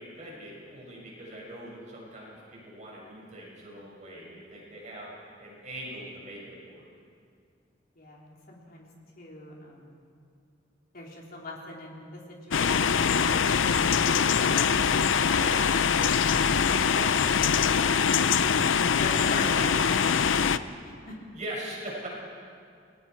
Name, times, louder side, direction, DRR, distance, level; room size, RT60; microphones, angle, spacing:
voice 1, 0.0-5.1 5.4-6.8 15.2-15.9 16.2-17.6 19.5-19.7 21.3-22.1, right 1 dB, 40° right, -4 dB, 6.2 m, -42 dB
voice 2, 8.0-8.8 9.2-10.0 10.9-13.7 19.0-21.2, left 2 dB, 50° left, -2 dB, 3.7 m, -41 dB
sound 1, 12.5-20.6, left 6 dB, 75° left, 0.6 m, -23 dB
29.0 x 20.5 x 4.6 m, 2.3 s
head